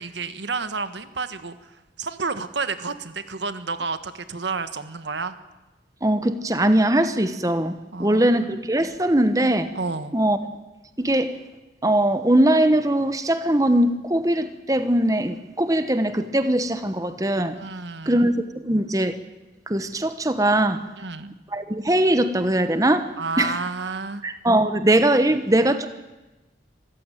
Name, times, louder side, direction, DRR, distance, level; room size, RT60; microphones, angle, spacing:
voice 1, 0.0-1.7 2.0-5.4 7.9-8.3 9.7-10.1 17.6-18.3 21.0-21.4 23.2-24.2, right 4 dB, 85° right, 11 dB, 1.4 m, -30 dB
voice 2, 6.0-7.7 8.0-9.7 10.1-10.4 11.0-11.3 11.8-17.5 18.1-18.3 18.6-19.2 19.7-20.8 21.5-23.1 23.4-23.6 24.2-25.9, right 1 dB, 20° right, 10 dB, 1.1 m, -21 dB
25.5 x 15.0 x 9.2 m, 1.1 s
head